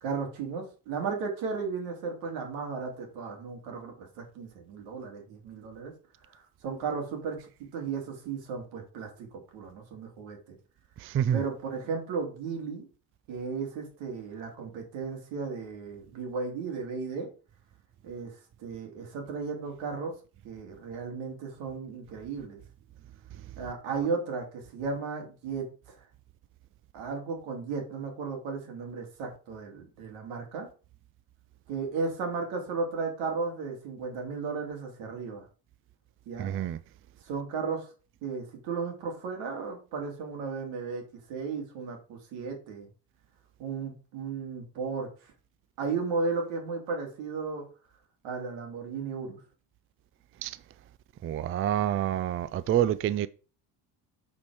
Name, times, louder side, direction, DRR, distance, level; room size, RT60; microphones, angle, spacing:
voice 1, 0.0-5.9 6.3-10.6 11.3-12.9 13.3-17.3 18.0-20.2 20.4-22.6 23.6-26.0 26.9-30.7 31.7-35.5 36.3-36.5 37.2-37.9 38.2-41.0 41.3-42.9 43.6-45.1 45.8-47.7 48.2-49.4, right 4 dB, 85° right, 2.6 m, -35 dB
voice 2, 11.0-11.4 36.4-36.8 50.4-50.6 51.2-53.3, right 11 dB, 30° right, 0.4 m, -27 dB
8.5 x 4.5 x 4.7 m
cardioid pair, 110°, 45 cm